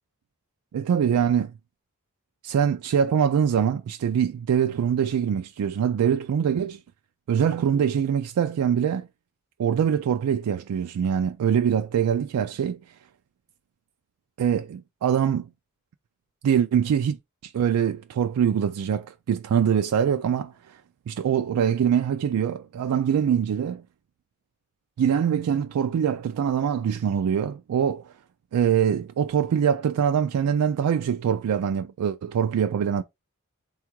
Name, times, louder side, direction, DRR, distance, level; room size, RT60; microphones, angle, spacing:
voice 1, 0.7-1.5 2.4-6.8 7.3-9.1 9.6-12.8 14.4-15.5 16.4-17.2 17.4-20.8 21.1-23.8 25.0-28.1 28.5-33.0, right 8 dB, 85° right, 0.3 m, -23 dB
3.5 x 2.4 x 4.4 m
head